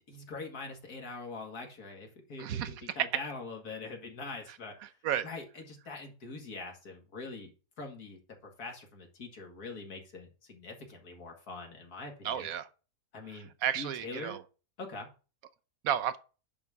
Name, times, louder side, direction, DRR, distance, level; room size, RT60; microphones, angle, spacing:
voice 1, 0.1-4.9 5.2-7.5 7.8-8.2 8.6-12.5 13.1-13.5 13.7-14.4 14.8-15.1, left 3 dB, 85° left, 2.5 m, -43 dB
voice 2, 2.4-3.1 4.8-5.3 12.2-12.7 13.3-14.4 15.8-16.2, right 10 dB, 70° right, 1.1 m, -33 dB
10.5 x 3.6 x 6.7 m
omnidirectional pair, 1.6 m